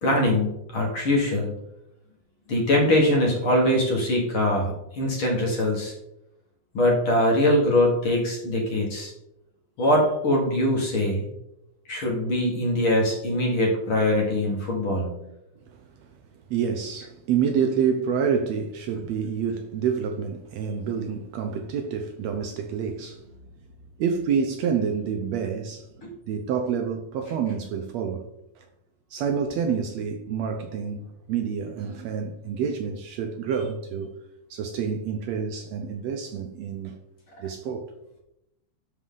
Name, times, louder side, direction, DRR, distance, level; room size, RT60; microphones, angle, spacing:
voice 1, 0.0-1.5 2.5-5.9 6.7-9.1 9.8-11.3 11.9-15.1 26.0-26.1, left 1 dB, 50° left, 2.1 m, -22 dB
voice 2, 16.5-23.2 24.0-25.9 26.3-28.3 28.6-28.7 29.1-34.1 34.5-37.0 37.4-37.9, right 7 dB, 75° right, 1.7 m, -28 dB
12.5 x 4.4 x 3.8 m
omnidirectional pair, 3.5 m